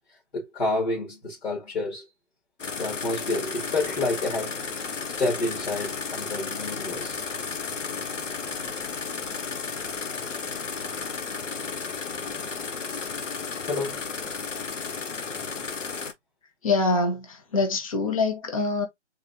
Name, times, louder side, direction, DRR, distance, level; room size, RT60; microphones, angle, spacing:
voice 1, 0.3-2.0 2.8-4.6 4.8-7.2 11.6-11.9 12.2-12.5 13.6-14.1, left 2 dB, 60° left, 2.3 m, -29 dB
sound 1, 2.6-16.1, left 5 dB, 85° left, 1.0 m, -33 dB
voice 2, 16.6-18.9, left 3 dB, 30° left, 0.9 m, -25 dB
3.9 x 3.1 x 2.7 m
hypercardioid pair, 160°, 36 cm